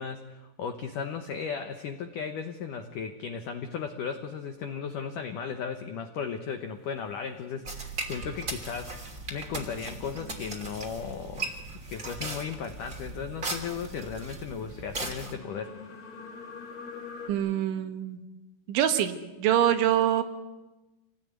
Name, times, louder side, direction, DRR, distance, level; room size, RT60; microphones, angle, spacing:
voice 1, 0.0-9.0 9.3-11.5 11.9-15.8, left 6 dB, 85° left, 7 dB, 1.8 m, -36 dB
sound 1, 6.8-17.3, left 4 dB, 55° left, 5.1 m, -48 dB
sound 2, 7.6-15.3, right 3 dB, 20° right, 2.6 m, -38 dB
voice 2, 17.3-18.2 18.7-19.1 19.4-20.2, right 10 dB, 75° right, 8 dB, 3.8 m, -24 dB
27.5 x 19.0 x 9.5 m, 1.1 s
omnidirectional pair, 5.6 m